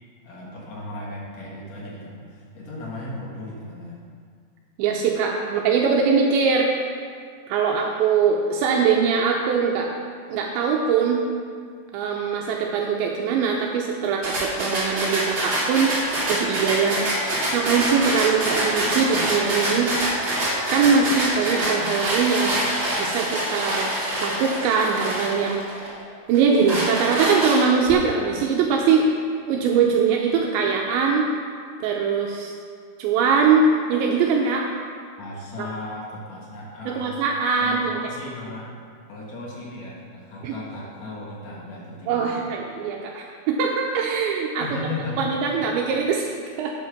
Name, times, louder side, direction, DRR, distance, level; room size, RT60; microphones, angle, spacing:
voice 1, 0.2-4.0 35.2-37.2 37.6-38.7 39.1-42.3 44.6-45.3, left 2 dB, 80° left, -4 dB, 1.5 m, -36 dB
voice 2, 4.8-7.0 7.5-9.9 10.3-11.2 11.9-15.9 16.3-17.1 17.5-19.9 20.7-22.7 23.0-23.9 24.2-25.6 26.3-29.1 29.5-31.3 31.8-32.5 33.0-34.7 35.6-35.7 36.9-38.0 40.4-40.6 42.1-44.7 45.2-46.7, right 5 dB, 80° right, 0 dB, 2.9 m, -22 dB
sound 1, 14.2-25.9 26.3-27.9, right 1 dB, 30° right, 3.0 m, -25 dB
8.7 x 8.6 x 5.9 m, 2.1 s
omnidirectional pair, 5.4 m